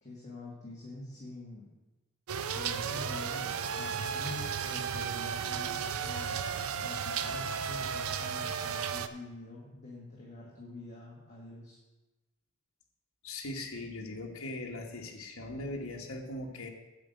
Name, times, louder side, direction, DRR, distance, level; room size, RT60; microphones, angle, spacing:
voice 1, 0.0-1.7 2.5-6.4 6.8-11.8, left 2 dB, 35° left, -5 dB, 1.7 m, -46 dB
sound 1, 2.3-9.1, right 7 dB, 75° right, 0.5 m, -34 dB
voice 2, 13.2-16.7, left 2 dB, 75° left, 1 dB, 1.3 m, -40 dB
8.3 x 5.3 x 7.7 m, 1.1 s
head